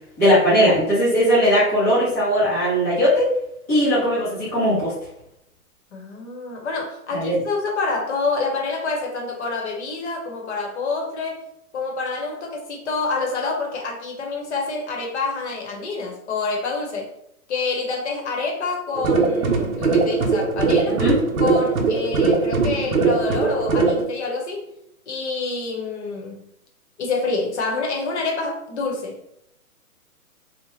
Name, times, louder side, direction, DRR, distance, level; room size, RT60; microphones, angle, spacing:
voice 1, 0.2-3.3 3.7-4.9 7.1-7.4 20.9-21.2, equal, 10° left, -13 dB, 0.5 m, -19 dB
voice 2, 5.9-11.4 11.7-17.1 17.5-21.0 21.4-24.7 25.1-26.4 27.0-29.2, left 3 dB, 50° left, 0 dB, 0.9 m, -27 dB
sound 1, 18.9-24.0, right 4 dB, 65° right, 0.7 m, -20 dB
2.8 x 2.1 x 3.0 m, 0.78 s
hypercardioid pair, 155°, 45 cm